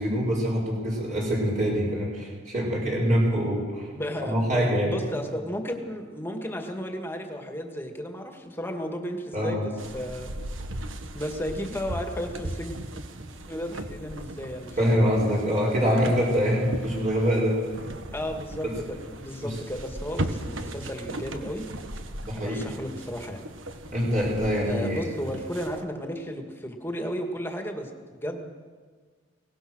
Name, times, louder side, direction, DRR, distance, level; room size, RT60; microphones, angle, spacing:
voice 1, 0.0-3.9 4.2-4.9 9.3-9.6 14.8-17.5 18.6-18.7 19.4-19.5 22.2-22.6 23.9-25.0, equal, 40° right, -4 dB, 5.3 m, -25 dB
voice 2, 3.9-10.4 11.1-12.8 13.5-15.0 15.8-16.4 18.1-21.7 22.3-23.4 24.6-28.5, equal, 10° left, 4 dB, 2.0 m, -34 dB
sound 1, 9.8-25.8, right 1 dB, 80° right, 1.5 m, -38 dB
23.0 x 18.5 x 6.3 m, 1.5 s
head